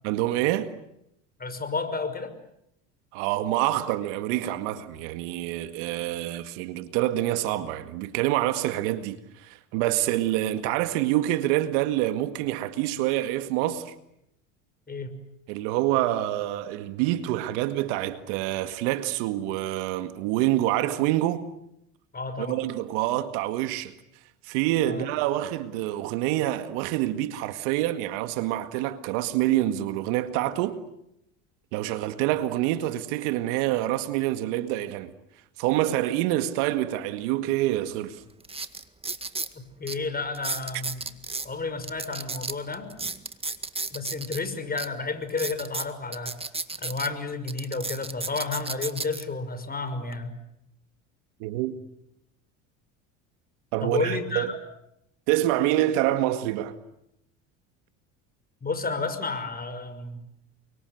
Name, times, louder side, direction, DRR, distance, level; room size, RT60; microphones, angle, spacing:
voice 1, 0.0-0.7 3.1-13.9 15.5-21.5 22.4-23.9 24.5-30.8 31.7-35.1 35.6-38.2 51.4-51.8 53.7-54.5 55.3-56.7, right 14 dB, 75° right, 2.0 m, -26 dB
voice 2, 1.4-2.3 14.9-15.2 22.1-22.6 24.9-25.1 39.5-41.0 41.4-42.9 43.9-46.4 46.8-50.4 53.8-54.6 58.6-60.2, left 4 dB, 25° left, 5.7 m, -31 dB
sound 1, 37.8-37.9 38.4-39.5 39.9-40.0 40.3-41.5 41.8-44.4 44.8-44.9 45.3-47.1 47.5-49.2 49.9-50.1, right 3 dB, 15° right, 1.9 m, -33 dB
29.0 x 25.0 x 7.9 m
supercardioid pair, 85°, 38 cm